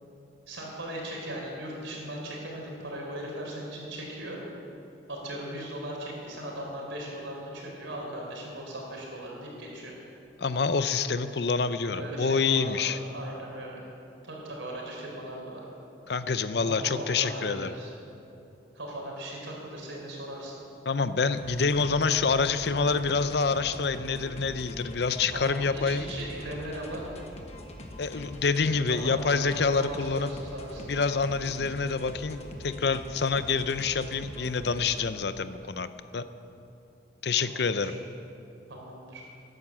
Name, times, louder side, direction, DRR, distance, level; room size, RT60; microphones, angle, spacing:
voice 1, 0.5-4.4 5.1-9.9 11.9-13.8 14.2-15.6 16.6-17.9 18.7-20.5 25.3-27.2 28.9-30.8 37.4-37.9 38.7-39.2, right 1 dB, 90° right, -2 dB, 4.3 m, -38 dB
voice 2, 10.4-13.0 16.1-17.7 20.9-26.1 28.0-30.3 30.9-35.9 36.1-36.2 37.2-37.9, left 4 dB, 60° left, 12 dB, 0.6 m, -27 dB
sound 1, 21.4-35.1, left 1 dB, 35° left, 1.2 m, -44 dB
13.5 x 11.0 x 7.3 m, 2.7 s
head